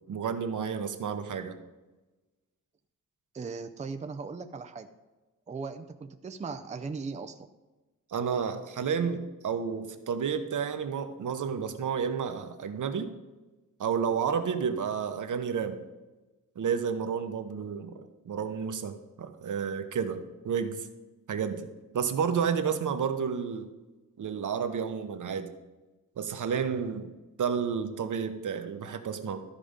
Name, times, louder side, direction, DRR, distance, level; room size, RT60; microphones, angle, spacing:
voice 1, 0.1-1.6 8.1-13.1 13.8-15.8 16.6-20.9 21.3-21.7 21.9-23.7 24.2-25.5 26.2-27.1 27.4-29.4, right 7 dB, 65° right, 8 dB, 1.0 m, -31 dB
voice 2, 3.3-4.9 5.5-7.4, right 4 dB, 20° right, 8 dB, 0.5 m, -38 dB
13.0 x 5.1 x 5.1 m, 1.1 s
wide cardioid pair, 120°, 33 cm